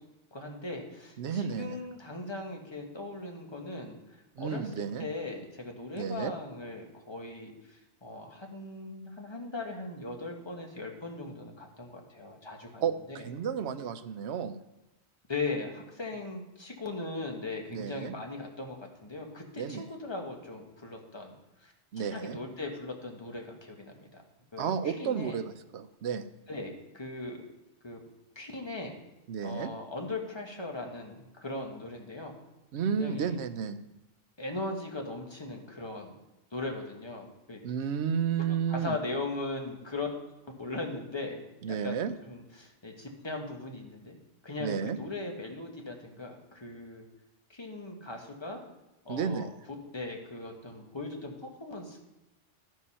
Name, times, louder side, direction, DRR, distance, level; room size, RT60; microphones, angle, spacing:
voice 1, 0.3-12.8 13.1-13.3 15.3-18.8 19.0-21.3 21.6-24.2 24.5-24.7 25.0-25.4 26.5-27.4 27.8-28.0 28.3-29.0 29.4-32.4 33.0-33.3 34.4-36.2 36.5-37.6 38.7-40.1 40.6-41.4 41.7-44.2 44.4-47.0 47.5-48.6 49.0-49.5 49.9-51.3 51.6-52.0, left 2 dB, 25° left, 1 dB, 1.4 m, -39 dB
voice 2, 1.2-1.8 4.4-5.1 6.0-6.3 12.8-14.6 17.7-18.1 19.6-19.9 21.9-22.4 24.6-26.3 29.3-29.7 32.7-33.8 37.6-39.0 41.6-42.1 44.6-45.0 49.1-49.5, right 7 dB, 70° right, 9 dB, 0.9 m, -32 dB
13.0 x 4.7 x 5.6 m, 0.97 s
omnidirectional pair, 1.2 m